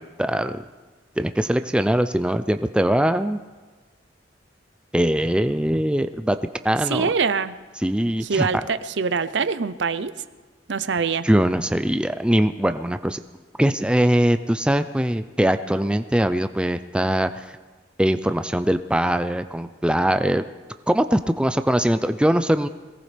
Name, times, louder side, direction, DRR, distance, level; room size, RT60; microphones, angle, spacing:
voice 1, 0.2-0.6 1.2-3.4 4.9-6.4 6.6-7.1 7.8-8.5 11.2-13.2 13.6-17.5 18.0-20.4 20.9-22.7, right 1 dB, 5° right, 10 dB, 0.4 m, -21 dB
voice 2, 6.9-7.5 8.2-10.1 10.7-11.3, right 5 dB, 70° right, 13 dB, 0.6 m, -24 dB
22.0 x 18.0 x 3.4 m, 1.3 s
head